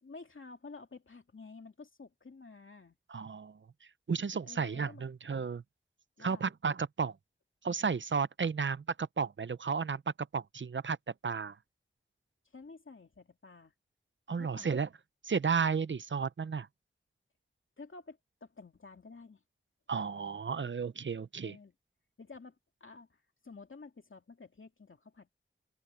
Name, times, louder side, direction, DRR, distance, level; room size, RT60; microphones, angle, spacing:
voice 1, 0.0-3.0 4.4-5.1 6.2-6.5 12.5-13.7 14.3-14.9 17.8-19.4 21.4-21.7 22.2-25.4, left 3 dB, 85° left, 2.5 m, -51 dB
voice 2, 3.1-3.6 4.1-5.6 6.2-7.1 7.6-10.0 10.3-11.0 11.2-11.6 14.3-14.9 15.3-16.7 19.9-21.6, right 5 dB, 70° right, 0.6 m, -33 dB
open air
wide cardioid pair, 55°, 20 cm